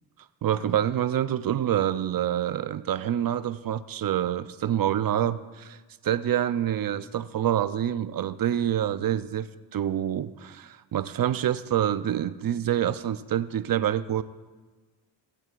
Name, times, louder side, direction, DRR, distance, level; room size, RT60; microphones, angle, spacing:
voice 1, 0.4-5.8 6.0-14.2, right 10 dB, 50° right, 13 dB, 0.7 m, -27 dB
19.5 x 7.8 x 2.6 m, 1.3 s
supercardioid pair, 60°, 44 cm